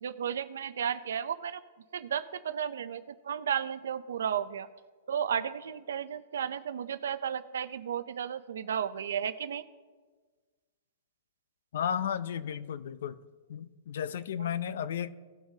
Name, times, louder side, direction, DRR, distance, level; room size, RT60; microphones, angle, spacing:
voice 1, 0.0-1.6 1.9-4.7 5.1-9.6 14.4-14.5, right 8 dB, 85° right, 13 dB, 0.6 m, -33 dB
voice 2, 11.7-13.2 13.5-15.1, left 8 dB, 65° left, 16 dB, 0.5 m, -33 dB
17.0 x 6.0 x 2.8 m, 1.5 s
hypercardioid pair, 170°, 0 cm